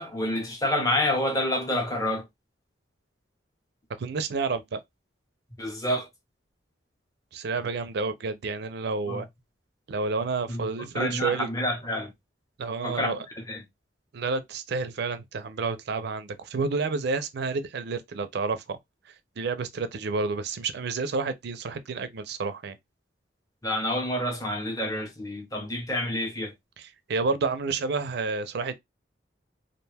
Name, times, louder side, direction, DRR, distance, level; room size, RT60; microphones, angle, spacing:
voice 1, 0.0-2.2 5.6-6.1 9.1-9.2 10.5-12.1 12.8-13.6 23.6-26.5, left 1 dB, 20° left, 0.8 m, -28 dB
voice 2, 4.0-4.8 7.3-9.3 9.9-11.5 12.6-13.3 14.1-18.8 19.4-22.8 26.8-28.8, right 4 dB, 60° right, 0.4 m, -30 dB
2.5 x 2.2 x 3.2 m
head